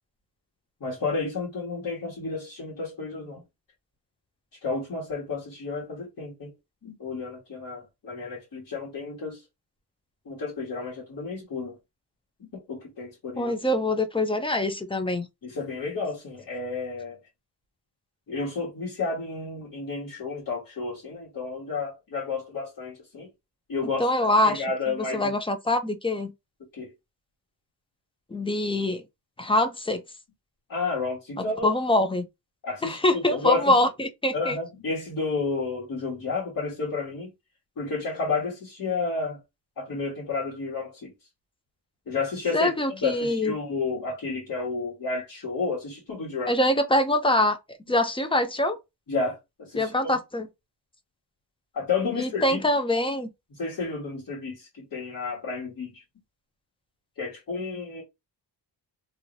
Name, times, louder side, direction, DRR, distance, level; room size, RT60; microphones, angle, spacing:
voice 1, 0.8-3.4 4.6-6.5 6.8-9.4 10.2-11.7 12.5-13.6 15.4-17.2 18.3-23.3 23.7-24.1 24.4-25.3 26.7-26.9 30.7-31.7 32.6-33.0 33.3-33.7 34.3-37.3 37.8-39.4 39.8-41.1 42.1-46.6 49.1-49.9 51.7-52.6 53.6-55.9 57.2-58.0, left 4 dB, 55° left, 1.4 m, -31 dB
voice 2, 13.4-15.3 24.0-26.3 28.3-29.0 29.4-30.0 31.6-32.3 32.8-34.6 42.5-43.5 46.5-47.6 47.9-48.8 49.7-50.5 52.2-53.3, left 1 dB, 15° left, 0.3 m, -24 dB
3.0 x 2.6 x 2.6 m
wide cardioid pair, 155°, 42 cm